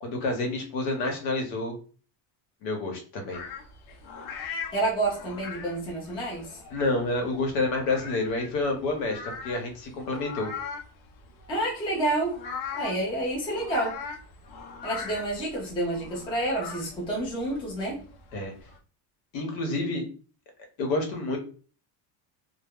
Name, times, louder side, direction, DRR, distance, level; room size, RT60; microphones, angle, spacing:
voice 1, 0.0-1.8 2.6-3.4 6.7-10.5 18.3-18.5 19.3-20.1 20.8-21.4, left 2 dB, 90° left, 3 dB, 1.0 m, -29 dB
sound 1, 3.3-18.8, left 5 dB, 70° left, 0.8 m, -41 dB
voice 2, 4.7-6.5 11.5-12.4 12.8-14.0 14.8-18.0, right 2 dB, 10° left, -3 dB, 0.4 m, -29 dB
2.1 x 2.1 x 3.5 m, 0.39 s
cardioid pair, 170°, 49 cm